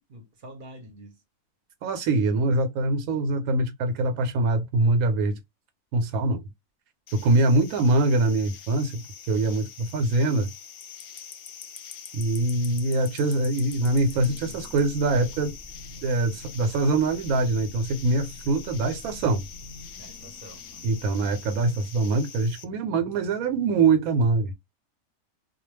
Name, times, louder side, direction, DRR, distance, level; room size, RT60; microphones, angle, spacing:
voice 1, 0.1-1.2 20.0-21.1, right 1 dB, 45° right, 0.7 m, -47 dB
voice 2, 1.8-5.4 5.9-6.4 7.1-9.0 9.3-10.5 12.1-15.6 16.0-19.4 20.8-24.5, right 2 dB, 90° right, 1.0 m, -23 dB
sound 1, 7.1-22.6, left 8 dB, 65° left, 0.6 m, -44 dB
sound 2, 13.6-21.9, equal, 10° left, 0.4 m, -46 dB
2.2 x 2.2 x 3.1 m
omnidirectional pair, 1.5 m